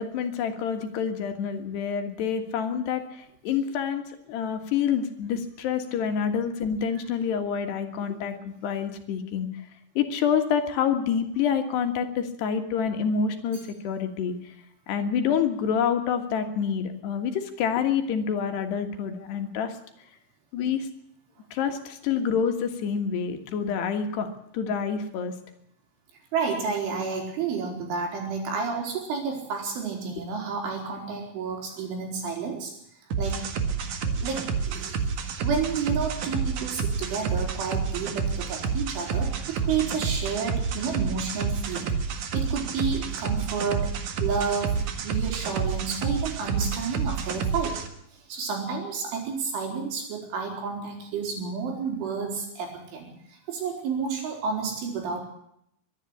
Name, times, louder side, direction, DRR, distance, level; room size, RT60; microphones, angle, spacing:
voice 1, 0.0-4.0 4.3-9.5 10.0-14.4 14.9-19.7 20.5-20.9 21.5-24.3 24.5-25.3, left 7 dB, 70° left, 6 dB, 3.6 m, -27 dB
voice 2, 26.3-32.7 33.2-33.4 34.2-35.1 35.4-43.9 44.2-44.8 45.0-47.8 48.1-55.2, right 5 dB, 85° right, 1 dB, 7.1 m, -30 dB
sound 1, 33.1-47.9, right 5 dB, 55° right, 2.5 m, -29 dB
23.5 x 11.5 x 10.0 m, 0.74 s
omnidirectional pair, 5.4 m